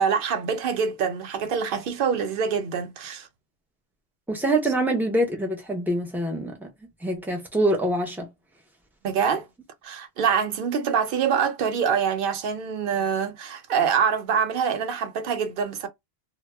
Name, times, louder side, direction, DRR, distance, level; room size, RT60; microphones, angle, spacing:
voice 1, 0.0-3.3 9.0-9.5 9.8-15.9, right 7 dB, 65° right, 0.7 m, -25 dB
voice 2, 4.3-6.7 7.0-8.3, right 1 dB, 5° right, 0.5 m, -25 dB
2.0 x 2.0 x 3.2 m
omnidirectional pair, 1.1 m